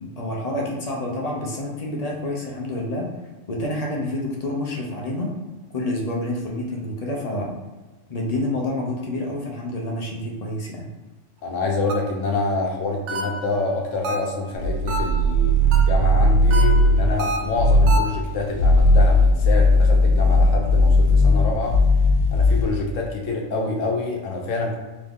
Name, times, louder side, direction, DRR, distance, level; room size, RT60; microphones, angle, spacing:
voice 1, 0.0-3.1 3.5-5.3 5.7-7.5 8.1-10.9, left 1 dB, 35° left, -2 dB, 0.7 m, -28 dB
voice 2, 11.4-15.6 15.8-21.8 22.3-24.8, left 3 dB, 90° left, 0 dB, 1.2 m, -26 dB
sound 1, 11.9-12.3 13.1-13.6 14.0-14.5 14.9-15.3 15.7-16.1 16.5-18.2, right 2 dB, 75° right, 0.9 m, -29 dB
sound 2, 14.5-17.2 17.5-18.1 18.5-22.7, left 1 dB, 65° left, 0.8 m, -17 dB
3.7 x 3.1 x 3.5 m, 1.2 s
omnidirectional pair, 1.3 m